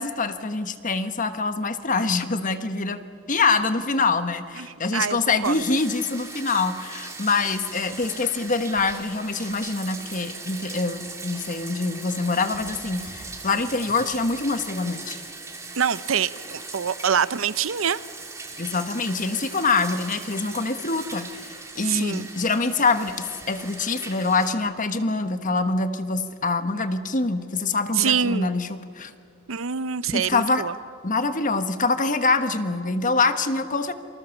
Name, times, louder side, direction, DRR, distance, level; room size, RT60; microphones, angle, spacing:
voice 1, 0.0-3.0 3.3-15.2 18.6-21.5 21.7-29.1 30.1-30.6 31.0-33.9, left 3 dB, 40° left, 9 dB, 1.4 m, -25 dB
voice 2, 4.6-5.6 15.8-18.0 21.8-22.3 27.9-28.5 29.5-30.7, right 7 dB, 75° right, 16 dB, 0.7 m, -25 dB
Bathtub (filling or washing), 5.4-24.5, right 3 dB, 15° right, 2.5 m, -39 dB
28.0 x 25.0 x 7.2 m, 2.2 s
head